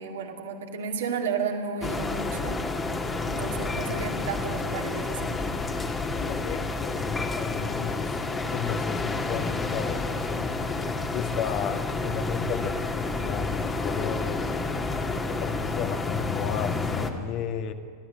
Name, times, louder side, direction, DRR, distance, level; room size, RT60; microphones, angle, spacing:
voice 1, 0.0-2.6 3.3-5.4, right 5 dB, 60° right, 2 dB, 2.5 m, -32 dB
sound 1, 1.8-17.1, left 3 dB, 15° left, 1.7 m, -30 dB
voice 2, 6.2-10.5 11.1-14.5 15.4-17.7, left 8 dB, 40° left, 7 dB, 1.5 m, -33 dB
29.0 x 13.5 x 7.9 m, 2.1 s
figure-of-eight pair, 90°, 0 cm